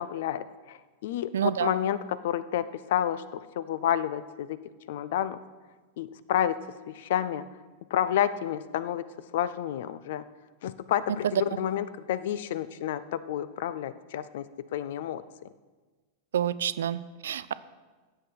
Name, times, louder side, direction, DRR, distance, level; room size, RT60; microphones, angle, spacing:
voice 1, 0.0-4.6 4.9-5.4 6.0-6.6 6.9-7.4 7.9-9.0 9.3-10.2 10.6-14.5 14.7-15.2, left 10 dB, 55° left, 16 dB, 0.5 m, -30 dB
voice 2, 1.3-1.7 16.3-17.5, right 9 dB, 65° right, 16 dB, 0.4 m, -28 dB
15.0 x 7.8 x 4.4 m, 1.3 s
figure-of-eight pair, 90°, 0 cm